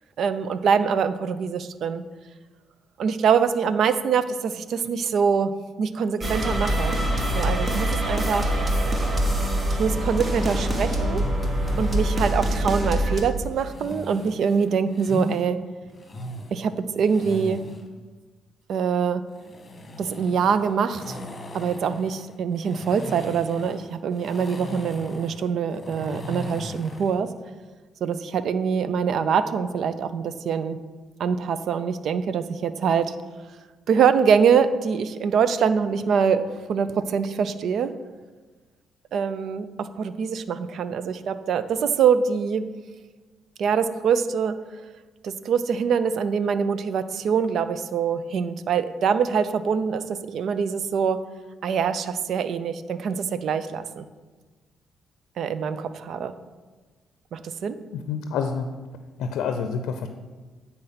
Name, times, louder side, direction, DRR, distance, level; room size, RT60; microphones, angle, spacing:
voice 1, 0.2-2.0 3.0-5.5 5.8-7.0 7.3-8.6 9.8-11.3 11.8-15.6 16.5-17.6 18.7-19.2 20.0-21.2 21.5-27.3 28.0-30.8 31.2-33.1 33.9-36.4 36.7-37.9 39.1-42.7 43.6-44.6 45.2-51.2 51.6-54.1 55.4-56.3 57.3-57.8, right 6 dB, 65° right, 12 dB, 0.5 m, -24 dB
sound 1, 6.2-13.2, equal, 30° right, 1.3 m, -24 dB
sound 2, 10.1-12.5 13.6-15.4 15.9-17.9 19.3-27.2, left 1 dB, 25° left, 1.3 m, -38 dB
voice 2, 57.9-58.7 59.2-60.1, left 6 dB, 85° left, 7 dB, 0.5 m, -28 dB
9.1 x 4.4 x 5.7 m, 1.3 s
cardioid pair, 90°, 0 cm